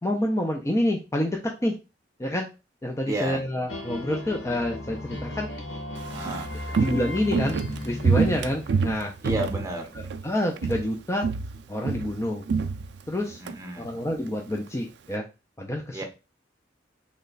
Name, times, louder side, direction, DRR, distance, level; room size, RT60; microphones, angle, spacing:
voice 1, 0.0-1.8 2.2-2.5 2.8-5.5 6.4-6.5 6.8-9.1 9.9-11.3 11.7-12.4 13.1-13.4 13.8-15.2 15.6-16.0, left 1 dB, 15° left, 1 dB, 0.4 m, -28 dB
voice 2, 3.1-3.4 6.1-6.5 9.2-9.8 13.4-13.9 15.9-16.0, right 1 dB, 15° right, 2 dB, 0.8 m, -31 dB
sound 1, 3.7-9.3, left 1 dB, 80° left, 0.8 m, -36 dB
Walk footsteps, 6.0-10.3 10.6-10.9 11.2-13.5 13.8-13.9, right 5 dB, 65° right, 0.3 m, -27 dB
3.2 x 2.2 x 3.9 m, 0.28 s
head